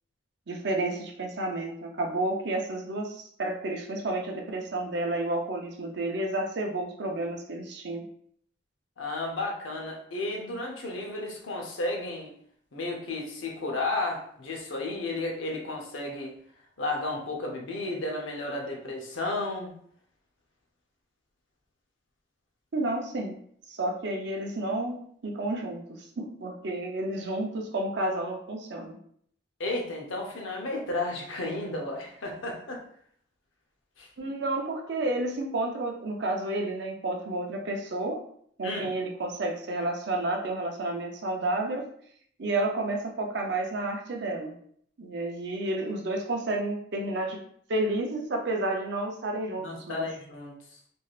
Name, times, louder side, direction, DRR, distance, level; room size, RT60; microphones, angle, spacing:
voice 1, 0.5-8.0 22.7-23.4 23.7-29.0 34.2-38.2 38.6-41.9 42.4-44.5 45.0-47.4 47.7-50.0, right 2 dB, 60° right, 2 dB, 0.5 m, -31 dB
voice 2, 9.0-12.3 12.7-16.3 16.8-19.7 29.6-32.8 34.0-34.1 38.6-38.9 49.6-50.5, left 2 dB, 80° left, 0 dB, 0.7 m, -33 dB
3.2 x 2.6 x 2.4 m, 0.64 s
head